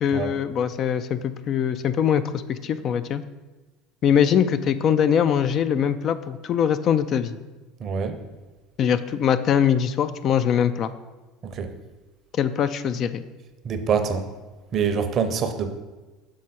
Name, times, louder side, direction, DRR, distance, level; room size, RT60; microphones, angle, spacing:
voice 1, 0.0-3.2 4.0-7.4 8.8-10.9 12.4-13.2, left 8 dB, 50° left, 12 dB, 0.3 m, -22 dB
voice 2, 7.8-8.2 11.4-11.7 13.6-14.2 14.7-15.7, right 6 dB, 45° right, 8 dB, 0.6 m, -25 dB
6.3 x 3.7 x 4.2 m, 1.2 s
hypercardioid pair, 75°, 0 cm